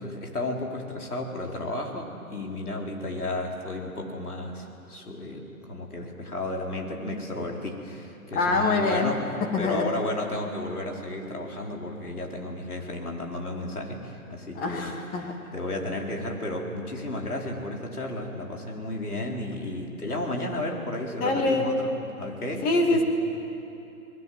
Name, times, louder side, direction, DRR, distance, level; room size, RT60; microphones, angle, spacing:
voice 1, 0.0-9.3 9.6-14.9 15.5-23.0, left 2 dB, 85° left, 0 dB, 4.5 m, -33 dB
voice 2, 8.3-9.1 9.5-9.9 14.5-15.4 21.2-21.7 22.6-23.0, left 3 dB, 20° left, 3 dB, 2.5 m, -24 dB
28.5 x 20.5 x 7.9 m, 2.8 s
figure-of-eight pair, 130°, 44 cm